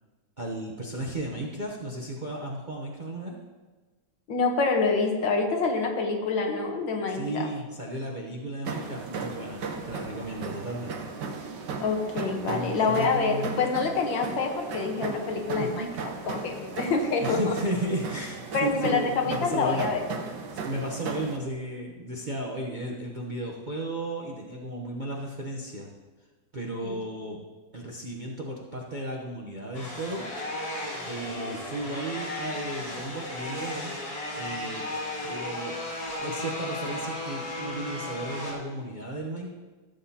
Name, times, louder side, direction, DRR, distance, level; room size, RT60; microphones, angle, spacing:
voice 1, 0.4-3.4 7.1-11.1 12.4-13.7 15.5-15.9 17.2-19.9 20.5-25.9 26.5-27.4 27.7-30.3 31.1-34.0 34.4-34.9 35.2-35.8 36.1-39.5, right 1 dB, 35° right, -2 dB, 0.7 m, -34 dB
voice 2, 4.3-7.5 11.8-15.9 16.3-17.5 18.5-20.1 26.8-27.0 31.2-31.6, left 4 dB, 80° left, 2 dB, 1.9 m, -27 dB
sound 1, 8.6-21.4, right 4 dB, 70° right, 1.6 m, -36 dB
sound 2, 29.7-38.5, left 1 dB, 55° left, 2.3 m, -35 dB
15.0 x 7.7 x 2.8 m, 1.3 s
omnidirectional pair, 2.0 m